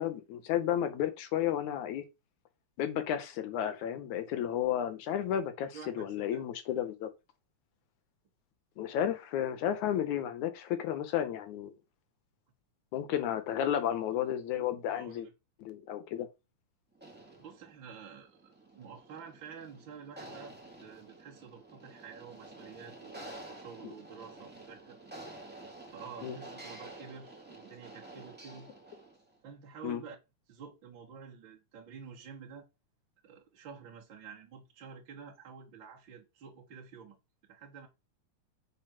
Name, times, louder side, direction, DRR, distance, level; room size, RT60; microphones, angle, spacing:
voice 1, 0.0-2.0 2.8-7.1 8.8-11.7 12.9-15.3 15.6-16.3 26.2-26.4 29.8-30.0, left 10 dB, 75° left, 2.4 m, -32 dB
voice 2, 5.7-6.4 14.9-15.3 17.4-20.5 20.8-25.0 25.9-28.7 29.4-30.2 30.5-32.7 33.2-37.2 37.5-37.9, right 6 dB, 45° right, 1.9 m, -49 dB
sound 1, 16.9-29.3, right 2 dB, 5° right, 1.7 m, -50 dB
7.5 x 4.2 x 5.8 m
omnidirectional pair, 3.5 m